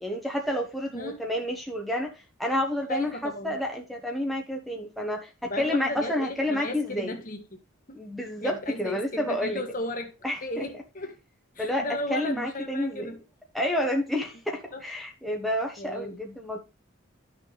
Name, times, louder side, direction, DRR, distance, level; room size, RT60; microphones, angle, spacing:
voice 1, 0.0-7.2 7.9-9.6 10.2-10.4 11.6-13.1 13.5-16.6, left 1 dB, ahead, 1.2 m, -29 dB
voice 2, 2.9-3.6 5.4-7.6 7.9-8.0 8.4-10.1 10.4-11.2 11.5-13.2 14.7-14.8 15.8-16.2, left 1 dB, 40° left, 1.6 m, -35 dB
12.0 x 6.1 x 3.4 m
head